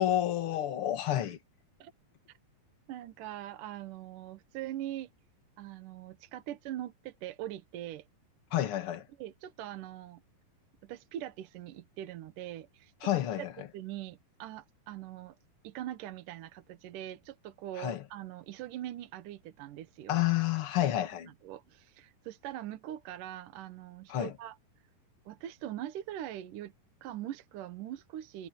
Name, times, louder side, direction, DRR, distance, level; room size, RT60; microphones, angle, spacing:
voice 1, 0.0-1.4 8.5-9.1 13.0-13.7 17.8-18.0 20.1-21.3 24.1-24.4, left 12 dB, 45° left, 2.1 m, -30 dB
voice 2, 2.9-5.1 5.6-8.0 9.2-10.2 10.8-13.1 13.4-13.5 13.7-15.4 15.6-20.3 20.8-20.9 21.4-24.6 25.3-26.7 27.0-28.5, right 12 dB, 70° right, 2.4 m, -42 dB
omnidirectional pair, 4.3 m